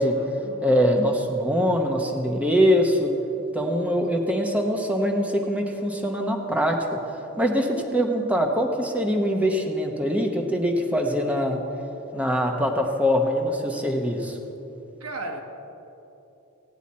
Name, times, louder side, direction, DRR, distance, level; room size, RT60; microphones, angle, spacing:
voice 1, 0.0-1.0 15.0-15.4, right 2 dB, 85° right, 3 dB, 1.2 m, -37 dB
voice 2, 0.6-3.1 3.5-6.9 7.4-11.6 12.1-14.4, equal, 5° right, 2 dB, 0.8 m, -23 dB
17.0 x 8.9 x 4.3 m, 3.0 s
head